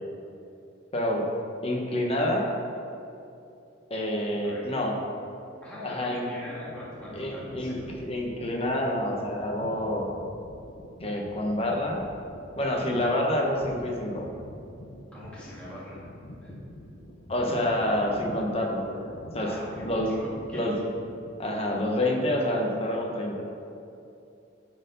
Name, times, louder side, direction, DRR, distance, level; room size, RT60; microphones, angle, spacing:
voice 1, 0.9-1.2 1.6-2.5 3.9-4.9 5.8-6.2 7.1-10.1 11.0-12.0 12.6-14.3 17.3-19.6 19.8-20.1 20.5-20.7 21.4-23.4, left 1 dB, 30° left, 0 dB, 1.1 m, -28 dB
voice 2, 5.6-7.9 15.1-16.0 16.4-16.5 19.4-20.7, left 1 dB, 5° left, -9 dB, 1.9 m, -41 dB
sound 1, 6.7-21.8, left 1 dB, 70° left, 1.0 m, -47 dB
10.5 x 4.5 x 5.2 m, 2.7 s
head